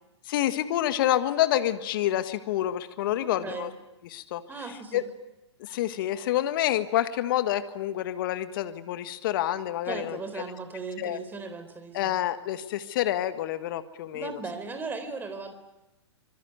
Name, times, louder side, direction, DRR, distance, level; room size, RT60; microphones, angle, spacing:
voice 1, 0.3-3.7 4.0-4.4 4.9-5.0 5.6-10.2 11.0-11.2 11.9-14.4, left 12 dB, 50° left, 11 dB, 1.7 m, -28 dB
voice 2, 3.2-3.7 4.5-5.0 9.9-12.1 14.1-15.5, right 4 dB, 15° right, 9 dB, 4.0 m, -37 dB
26.0 x 23.0 x 9.5 m, 0.95 s
hypercardioid pair, 120°, 15 cm